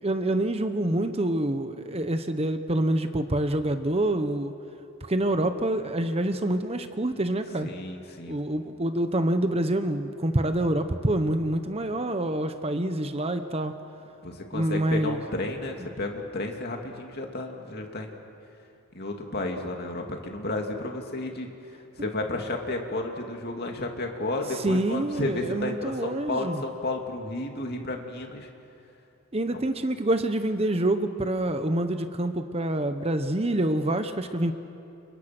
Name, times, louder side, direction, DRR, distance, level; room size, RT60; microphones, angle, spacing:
voice 1, 0.0-4.5 5.0-7.7 8.3-13.7 14.5-15.2 22.0-22.1 24.5-26.6 29.3-34.5, right 1 dB, 30° right, 8 dB, 1.0 m, -26 dB
voice 2, 7.6-8.4 14.2-18.2 18.9-21.5 22.0-28.5, left 2 dB, 45° left, 2 dB, 2.7 m, -32 dB
30.0 x 29.5 x 6.2 m, 2.7 s
head